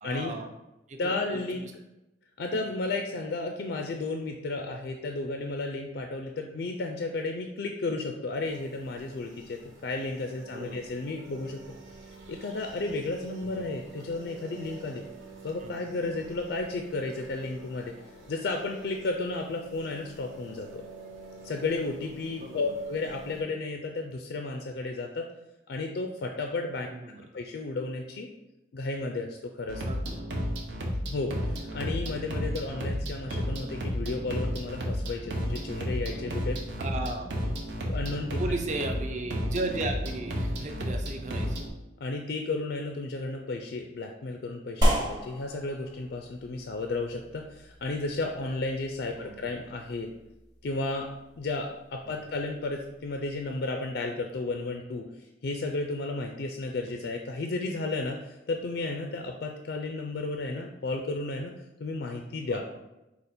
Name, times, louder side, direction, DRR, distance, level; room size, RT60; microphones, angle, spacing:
voice 1, 0.0-0.5 0.9-1.7 10.5-10.8 13.4-13.7 15.6-15.7 22.4-22.6 26.9-27.2 29.8-30.3 36.8-37.3 38.4-41.7 49.2-49.4 52.1-52.2 62.5-62.6, right 2 dB, 35° right, 4 dB, 0.5 m, -35 dB
voice 2, 1.0-1.7 2.4-11.6 12.3-15.0 15.4-17.9 18.3-20.8 21.4-25.3 25.7-26.9 27.3-28.3 28.7-29.8 31.1-36.6 37.9-38.4 42.0-50.1 50.6-51.1 51.4-61.5 61.8-62.6, left 3 dB, 60° left, 3 dB, 0.4 m, -33 dB
sound 1, 8.4-23.4, right 2 dB, 85° right, 1.1 m, -48 dB
sound 2, 29.7-41.7, equal, 65° right, 0.8 m, -32 dB
sound 3, 44.8-53.5, equal, 20° right, 0.8 m, -34 dB
5.0 x 2.4 x 4.1 m, 0.94 s
head